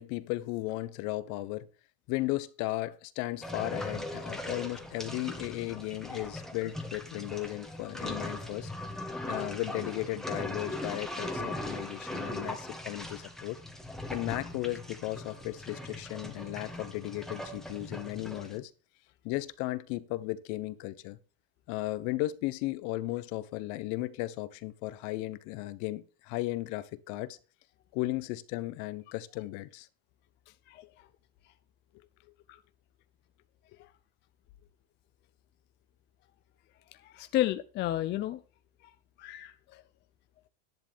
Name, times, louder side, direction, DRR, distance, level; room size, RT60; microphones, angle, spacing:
voice 1, 0.0-1.7 2.1-8.7 9.3-13.6 14.1-18.7 19.2-21.2 21.7-27.4 27.9-29.9, left 18 dB, 50° left, 1.0 m, -35 dB
sound 1, 3.4-18.6, left 1 dB, ahead, 1.4 m, -39 dB
voice 2, 37.0-38.4 39.2-39.8, left 14 dB, 30° left, 0.6 m, -32 dB
11.0 x 10.5 x 3.5 m
supercardioid pair, 150°, 37 cm